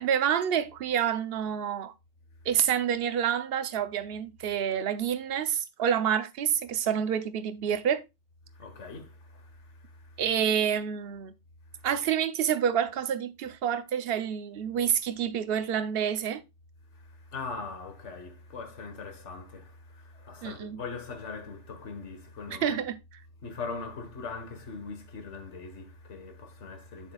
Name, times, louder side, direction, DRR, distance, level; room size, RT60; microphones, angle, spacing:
voice 1, 0.0-1.9 2.5-8.0 10.2-11.3 11.8-16.4 20.4-20.8 22.5-23.0, right 8 dB, 55° right, 0.9 m, -28 dB
voice 2, 8.5-10.2 11.7-11.9 16.9-22.8 23.4-27.1, left 4 dB, 70° left, 1.8 m, -41 dB
8.0 x 7.6 x 2.3 m
omnidirectional pair, 1.3 m